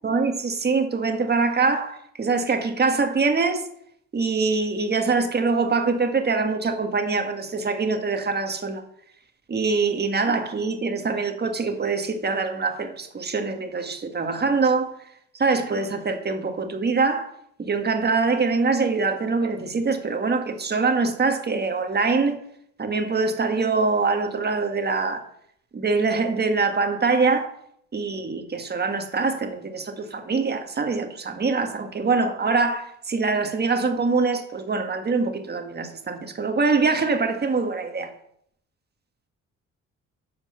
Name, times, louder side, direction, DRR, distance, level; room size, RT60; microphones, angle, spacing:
voice 1, 0.0-3.7 4.1-8.8 9.5-15.0 15.3-17.3 17.6-22.4 22.8-25.2 25.7-27.6 27.9-38.1, right 4 dB, 35° right, 1.7 m, -24 dB
12.5 x 4.5 x 6.7 m
cardioid pair, 90°, 30 cm